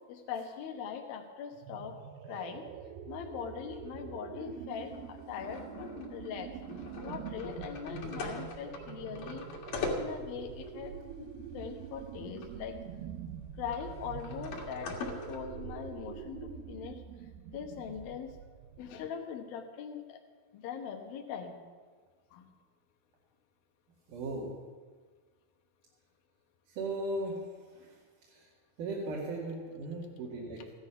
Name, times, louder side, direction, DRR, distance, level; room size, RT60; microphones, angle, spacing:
voice 1, 0.1-2.0 2.2-2.7 3.1-6.5 7.0-9.5 10.0-12.8 13.6-15.0 15.3-17.0 17.5-18.3 18.8-20.2 20.5-21.6 22.3-22.5, left 7 dB, 85° left, 4 dB, 3.0 m, -41 dB
sound 1, 1.5-19.1, right 8 dB, 85° right, 2.6 m, -45 dB
sound 2, 4.7-12.6 12.8-12.9 13.7-15.4, left 3 dB, 70° left, 3.2 m, -41 dB
voice 2, 24.1-24.5 26.7-28.5 28.8-30.7, right 2 dB, 65° right, -5 dB, 3.5 m, -38 dB
15.5 x 12.0 x 5.8 m, 1.5 s
omnidirectional pair, 4.2 m